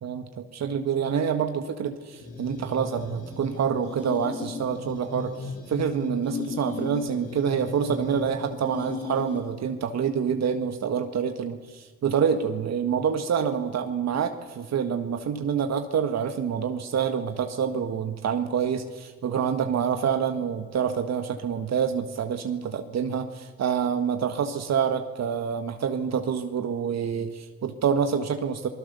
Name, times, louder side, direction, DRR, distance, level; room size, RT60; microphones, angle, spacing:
voice 1, 0.0-28.7, right 7 dB, 60° right, 6 dB, 1.6 m, -27 dB
sound 1, 2.2-9.7, left 4 dB, 55° left, 5.9 m, -37 dB
27.0 x 20.5 x 6.9 m, 1.4 s
cardioid pair, 90°, 30 cm